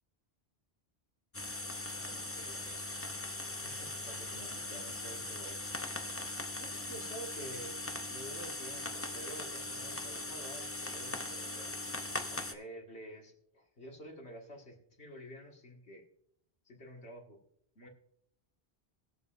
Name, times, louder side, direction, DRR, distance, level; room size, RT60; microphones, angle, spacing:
sound 1, 1.3-12.5, left 2 dB, 15° left, 0.5 m, -40 dB
voice 1, 1.9-3.0 3.5-5.6 6.6-7.8 8.1-11.8 12.1-16.0 16.7-17.4 17.8-17.9, right 1 dB, 85° left, 0 dB, 2.2 m, -50 dB
20.5 x 7.3 x 2.6 m, 0.73 s
omnidirectional pair, 1.1 m